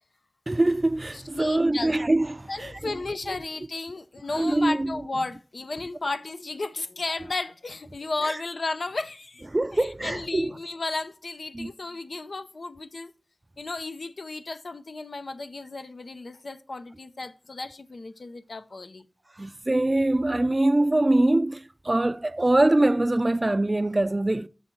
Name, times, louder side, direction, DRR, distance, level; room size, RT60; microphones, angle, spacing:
voice 1, 0.5-2.7 3.3-3.4 4.4-4.9 9.5-10.5 11.5-11.7 19.4-24.5, right 2 dB, 40° right, 0.4 m, -23 dB
voice 2, 1.1-1.9 2.5-9.5 9.7-13.1 13.6-19.0, left 3 dB, 85° left, 0.5 m, -34 dB
7.7 x 6.3 x 4.4 m
wide cardioid pair, 45°, 0 cm